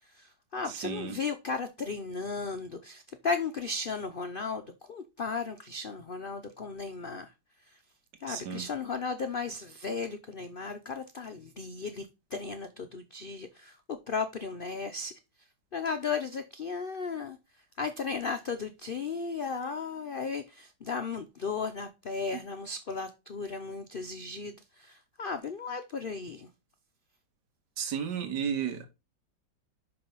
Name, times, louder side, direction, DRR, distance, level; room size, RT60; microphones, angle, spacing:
voice 1, 0.1-4.6 4.9-7.3 7.7-7.8 8.2-15.2 15.7-17.4 17.8-26.5, left 4 dB, 90° left, 0.4 m, -35 dB
voice 2, 0.6-1.2 8.3-8.6 27.8-28.9, right 7 dB, 70° right, 1.8 m, -33 dB
5.7 x 5.6 x 5.4 m
omnidirectional pair, 1.9 m